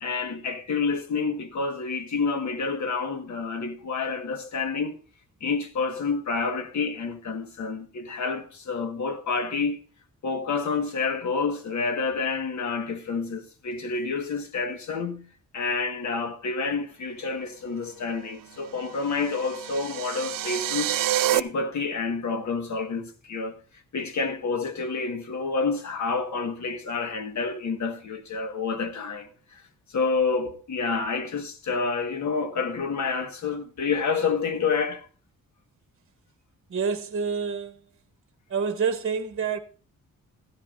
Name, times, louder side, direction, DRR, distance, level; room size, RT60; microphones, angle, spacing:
voice 1, 0.0-5.0 5.4-9.8 10.2-20.9 21.3-23.5 23.9-29.6 29.9-35.1, left 4 dB, 55° left, 1.5 m, -29 dB
sound 1, 18.8-21.4, right 13 dB, 70° right, 0.6 m, -27 dB
voice 2, 36.7-37.8 38.5-39.6, right 6 dB, 40° right, 1.0 m, -27 dB
16.0 x 13.5 x 2.5 m
wide cardioid pair, 155°, 34 cm